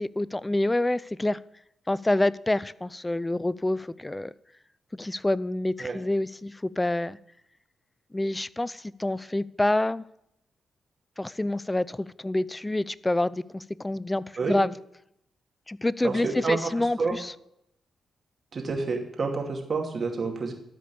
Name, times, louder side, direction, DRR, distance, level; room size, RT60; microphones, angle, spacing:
voice 1, 0.0-1.4 1.9-4.3 4.9-7.2 8.1-10.0 11.2-14.7 15.7-17.3, left 1 dB, 20° left, 19 dB, 0.5 m, -27 dB
voice 2, 16.0-17.2 18.5-20.5, right 4 dB, 50° right, 2 dB, 2.5 m, -29 dB
13.0 x 5.2 x 8.3 m, 0.77 s
hypercardioid pair, 40°, 0 cm